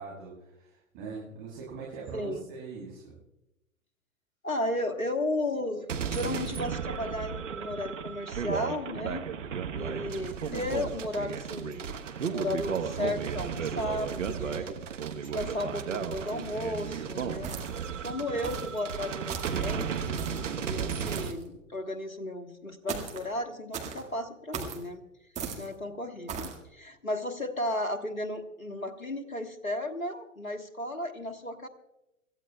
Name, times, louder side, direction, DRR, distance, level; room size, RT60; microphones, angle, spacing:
voice 1, 0.0-3.2, right 4 dB, 35° right, -5 dB, 7.1 m, -42 dB
voice 2, 2.1-2.4 4.4-9.2 9.7-11.9 12.2-14.8 15.2-17.5 18.0-25.0 25.6-31.7, left 1 dB, 90° left, 8 dB, 1.5 m, -34 dB
sound 1, 5.9-21.3, right 7 dB, 65° right, 1.2 m, -34 dB
sound 2, 17.4-17.9 18.4-18.7 19.3-19.6 20.2-20.5 21.0-21.4 22.9-23.2 23.7-24.0 24.5-24.8 25.4-25.7 26.3-26.6, right 6 dB, 15° right, 2.0 m, -37 dB
26.5 x 15.0 x 2.3 m, 0.92 s
figure-of-eight pair, 105°, 40 cm